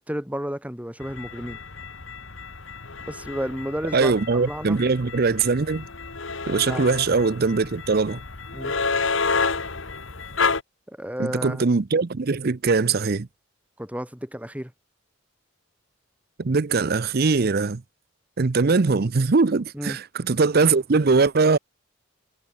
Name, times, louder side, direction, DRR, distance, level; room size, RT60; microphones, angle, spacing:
voice 1, 0.0-1.6 3.0-4.8 6.7-6.9 8.5-8.7 10.9-11.6 13.8-14.7 19.7-20.0, equal, 5° right, 3.2 m, -32 dB
sound 1, 1.0-10.6, left 4 dB, 70° left, 2.3 m, -30 dB
voice 2, 3.9-5.9 6.5-8.2 11.2-13.3 16.4-17.8 18.4-21.6, right 4 dB, 50° right, 0.6 m, -21 dB
head